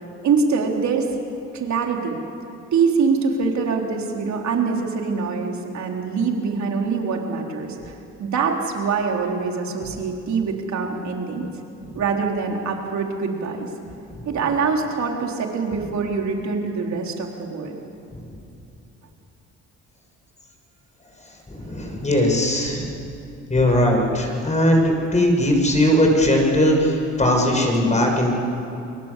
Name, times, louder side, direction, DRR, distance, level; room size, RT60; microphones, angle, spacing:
voice 1, 0.2-1.1 1.5-2.2 2.7-7.9 8.2-11.5 11.9-13.7 14.3-17.8, right 5 dB, 65° right, 1 dB, 3.9 m, -24 dB
voice 2, 21.5-22.9 23.5-28.3, left 1 dB, 25° left, 1 dB, 6.8 m, -19 dB
29.5 x 22.5 x 8.4 m, 2.7 s
cardioid pair, 90°, 30 cm